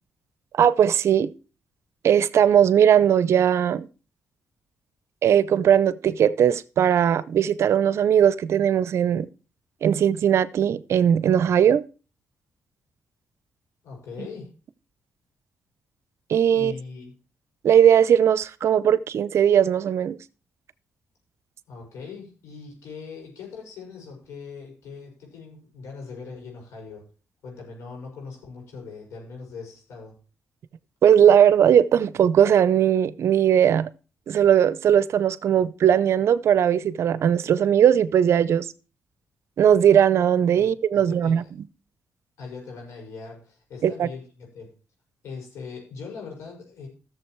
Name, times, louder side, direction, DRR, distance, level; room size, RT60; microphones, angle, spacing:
voice 1, 0.6-1.3 2.0-3.9 5.2-9.3 9.8-11.8 16.3-16.7 17.6-20.2 31.0-33.9 34.3-38.7 39.6-41.4 43.8-44.1, right 9 dB, 70° right, 0.6 m, -19 dB
voice 2, 13.8-14.5 16.5-17.1 21.7-27.0 27.4-30.2 40.6-41.5 42.4-44.7 45.2-46.9, left 5 dB, 85° left, 6.3 m, -40 dB
14.0 x 7.0 x 4.6 m
cardioid pair, 70°, 5 cm